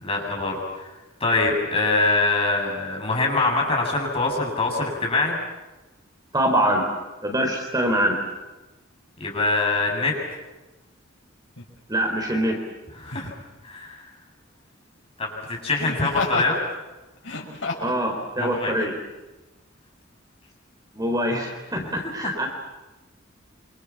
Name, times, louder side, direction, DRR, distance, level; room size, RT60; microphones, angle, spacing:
voice 1, 0.0-0.9 1.2-5.4 9.2-10.1 13.0-13.3 13.6-14.0 15.2-16.6 18.4-18.7 22.2-22.5, left 3 dB, 30° left, 0 dB, 7.7 m, -24 dB
voice 2, 6.3-6.9 7.2-8.2 11.9-12.6 17.8-18.9 20.9-22.5, right 1 dB, 20° right, 2 dB, 4.2 m, -24 dB
Laughter, 11.6-11.7 13.0-13.4 15.8-16.5 17.2-18.0 18.7-18.9, left 2 dB, 75° left, 6.1 m, -30 dB
28.0 x 26.0 x 7.4 m, 1.1 s
head